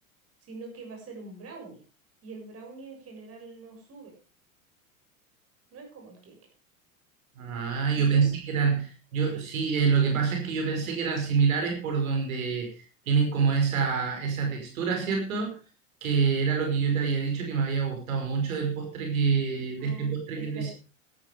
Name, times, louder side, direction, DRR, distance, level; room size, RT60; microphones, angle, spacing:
voice 1, 0.4-1.8 2.2-4.2 5.7-6.4 7.9-8.3 19.8-20.7, right 3 dB, 35° right, 2 dB, 7.1 m, -44 dB
voice 2, 7.4-12.7 13.1-15.6 16.0-20.7, right 5 dB, 85° right, 3 dB, 5.5 m, -26 dB
12.5 x 12.5 x 4.8 m, 0.34 s
supercardioid pair, 110°, 40 cm